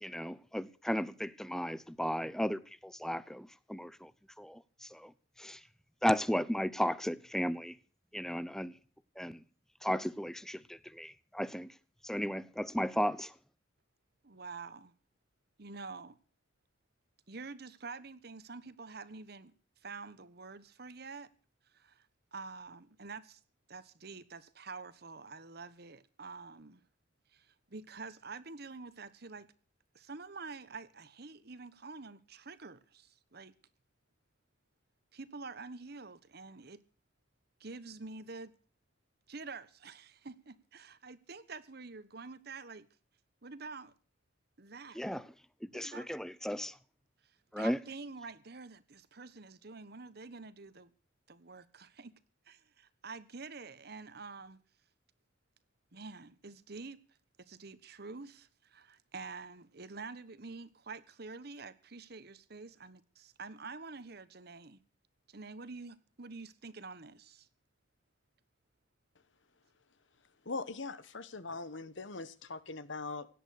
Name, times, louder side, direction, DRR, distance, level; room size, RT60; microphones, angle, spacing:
voice 1, 0.0-4.1 4.4-5.1 5.4-5.6 6.0-7.7 8.1-8.8 9.2-9.4 9.8-11.7 12.0-13.3 44.9-45.2 45.6-46.7 47.5-47.8, equal, 5° left, 0.8 m, -35 dB
voice 2, 14.2-14.9 15.6-16.2 17.3-19.5 19.8-21.3 21.7-23.4 23.7-26.8 27.3-29.5 29.9-33.5 35.1-36.8 37.6-38.5 39.3-42.9 43.4-43.9 44.6-45.0 45.7-46.1 47.2-50.9 51.3-52.1 52.4-54.6 55.9-57.0 57.4-64.8 65.3-67.5, right 4 dB, 60° right, 1.3 m, -47 dB
voice 3, 70.4-73.3, left 3 dB, 85° left, 1.3 m, -41 dB
17.5 x 11.0 x 6.6 m
head